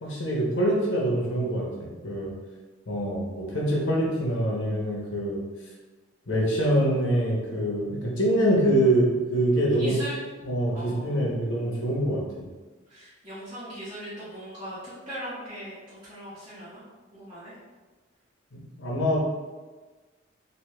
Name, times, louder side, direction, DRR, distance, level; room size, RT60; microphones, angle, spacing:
voice 1, 0.0-2.3 2.9-5.4 6.3-10.0 10.4-12.5 18.5-19.2, right 1 dB, 75° left, -3 dB, 0.9 m, -25 dB
voice 2, 9.8-10.1 10.7-11.5 12.9-16.8 17.1-17.5, equal, 30° right, -13 dB, 1.1 m, -39 dB
3.0 x 2.8 x 3.2 m, 1.3 s
head